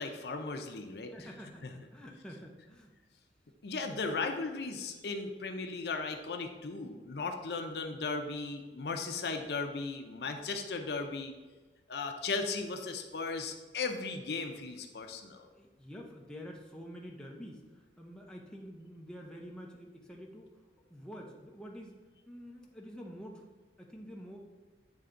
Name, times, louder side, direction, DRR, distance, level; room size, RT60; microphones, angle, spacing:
voice 1, 0.0-1.3 1.6-1.9 3.6-11.3 11.9-15.5, left 4 dB, 65° left, 5 dB, 0.6 m, -37 dB
voice 2, 1.1-2.9 15.5-20.6 20.9-22.0 22.3-24.4, equal, 5° left, -1 dB, 0.7 m, -48 dB
8.3 x 3.4 x 3.8 m, 1.3 s
head